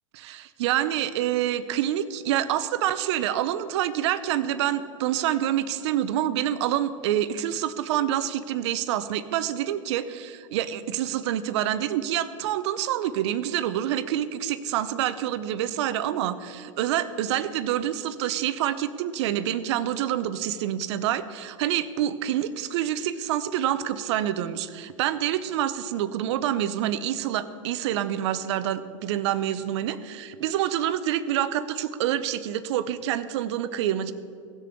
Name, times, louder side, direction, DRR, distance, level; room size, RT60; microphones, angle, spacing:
voice 1, 0.1-34.1, right 11 dB, 60° right, 13 dB, 0.7 m, -27 dB
17.5 x 6.7 x 3.7 m, 2.5 s
hypercardioid pair, 105°, 17 cm